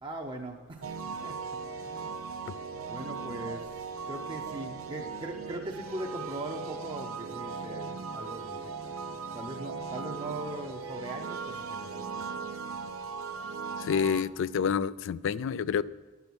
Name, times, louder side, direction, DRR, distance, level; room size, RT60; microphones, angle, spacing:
voice 1, 0.0-2.2 2.9-9.0 9.3-12.2, right 2 dB, 25° right, 1 dB, 0.7 m, -40 dB
sound 1, 0.8-14.2, right 5 dB, 75° right, 0.7 m, -38 dB
voice 2, 13.8-15.8, left 7 dB, 65° left, 18 dB, 0.3 m, -28 dB
10.5 x 6.9 x 6.1 m, 1.2 s
head